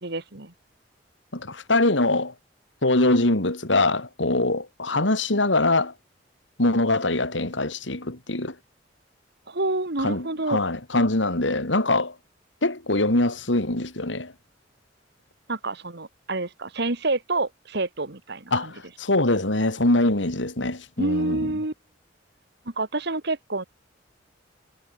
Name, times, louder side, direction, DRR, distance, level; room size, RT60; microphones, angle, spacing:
voice 1, 0.0-0.5 9.5-10.6 15.5-18.7 21.0-21.7 22.7-23.6, right 2 dB, 65° right, 2.2 m, -28 dB
voice 2, 1.3-2.3 2.8-5.9 6.6-8.6 10.0-12.1 12.6-14.3 18.5-21.5, left 2 dB, 80° left, 3.4 m, -23 dB
head